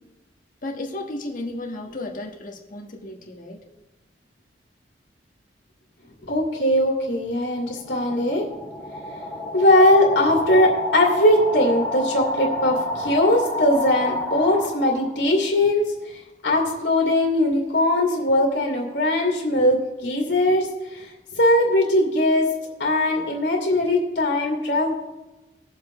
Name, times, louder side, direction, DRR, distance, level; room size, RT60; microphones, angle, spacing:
voice 1, 0.6-3.6, left 2 dB, 50° left, 1 dB, 1.5 m, -33 dB
voice 2, 6.2-8.4 9.5-22.5 22.8-24.9, left 1 dB, 85° left, -2 dB, 2.5 m, -20 dB
sound 1, 7.5-15.2, left 1 dB, 10° left, 1.8 m, -29 dB
20.5 x 7.4 x 3.1 m, 1.1 s
head